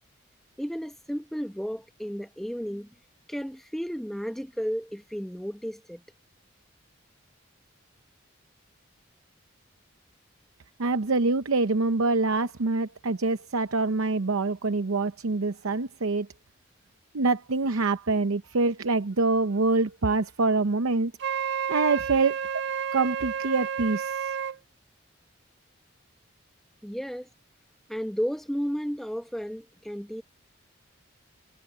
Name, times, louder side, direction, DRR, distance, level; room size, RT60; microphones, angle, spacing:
voice 1, 0.6-2.9 3.3-6.0 26.8-27.3 27.9-30.2, equal, ahead, 1.0 m, -33 dB
voice 2, 10.8-16.3 17.1-21.1 21.7-22.4 22.9-24.3, right 3 dB, 90° right, 0.8 m, -25 dB
Wind instrument woodwind instrument, 21.2-24.6, right 7 dB, 55° right, 0.5 m, -30 dB
head